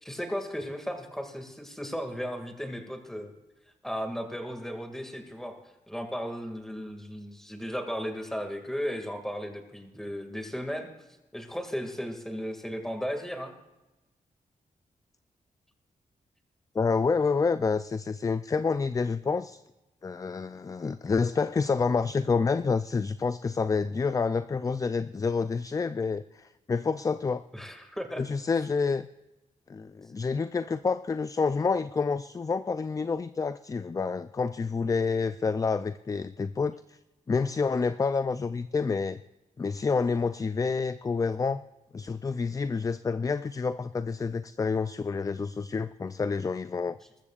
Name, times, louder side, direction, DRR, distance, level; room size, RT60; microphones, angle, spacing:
voice 1, 0.0-3.3 3.8-5.6 5.9-10.9 11.3-13.5 27.5-28.2, equal, 5° left, 4 dB, 2.1 m, -35 dB
voice 2, 16.7-19.6 20.0-27.4 28.2-29.1 29.7-37.0 37.3-39.2 39.6-41.6 41.9-47.0, left 4 dB, 25° left, 13 dB, 0.4 m, -28 dB
21.5 x 13.5 x 2.4 m, 1.0 s
wide cardioid pair, 105°, 14 cm